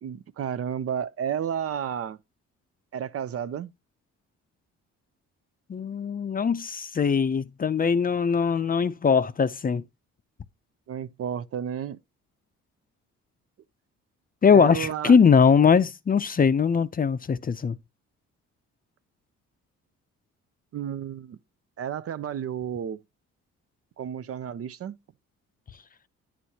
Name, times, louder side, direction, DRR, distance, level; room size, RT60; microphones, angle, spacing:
voice 1, 0.0-2.2 2.9-3.7 10.9-12.0 14.5-15.2 20.7-21.4 21.8-23.0 24.0-25.0, right 9 dB, 50° right, 0.6 m, -32 dB
voice 2, 5.7-9.8 14.4-17.7, left 6 dB, 30° left, 0.5 m, -21 dB
10.0 x 6.2 x 2.8 m
cardioid pair, 90°, 30 cm